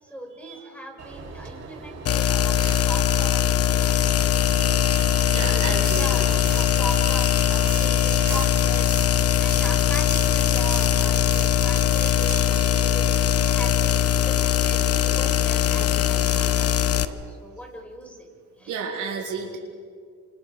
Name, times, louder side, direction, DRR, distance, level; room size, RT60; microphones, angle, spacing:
voice 1, 0.0-4.0 5.2-9.0 9.4-13.1 13.5-16.9 17.3-18.3 18.6-18.8, equal, 5° left, 2 dB, 5.1 m, -39 dB
Train, 1.0-17.1, right 4 dB, 60° right, 7.6 m, -39 dB
sound 1, 2.1-17.1, left 11 dB, 55° left, 0.9 m, -21 dB
voice 2, 5.3-6.1 12.4-12.9 18.7-19.6, right 6 dB, 80° right, 0 dB, 4.2 m, -33 dB
sound 2, 5.9-12.4, right 5 dB, 30° right, 1.5 m, -39 dB
29.0 x 27.0 x 5.0 m, 2.1 s
cardioid pair, 90°, 30 cm